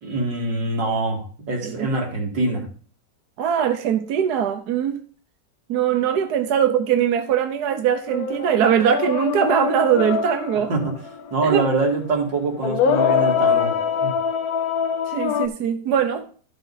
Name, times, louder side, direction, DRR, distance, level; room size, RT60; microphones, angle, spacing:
voice 1, 0.0-2.7 10.7-10.9 11.3-13.7 14.0-14.1, right 3 dB, 90° right, 2.9 m, -24 dB
voice 2, 3.4-5.0 5.7-10.7 11.4-11.7 15.1-16.2, right 9 dB, 70° right, 1.3 m, -21 dB
sound 1, 8.1-11.3 12.6-15.5, left 6 dB, 65° left, 1.2 m, -23 dB
12.0 x 6.6 x 4.0 m
omnidirectional pair, 1.9 m